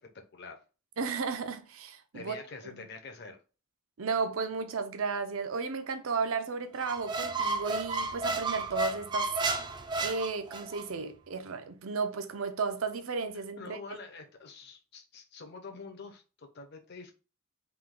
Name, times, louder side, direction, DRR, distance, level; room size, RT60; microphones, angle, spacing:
voice 1, 1.0-2.4 4.0-9.3 10.0-13.8, right 4 dB, 75° right, 0.6 m, -34 dB
voice 2, 2.1-3.4 13.3-17.1, left 4 dB, 55° left, 0.8 m, -46 dB
Squeak, 6.8-10.9, right 3 dB, 20° right, 0.3 m, -32 dB
3.6 x 2.8 x 3.7 m
head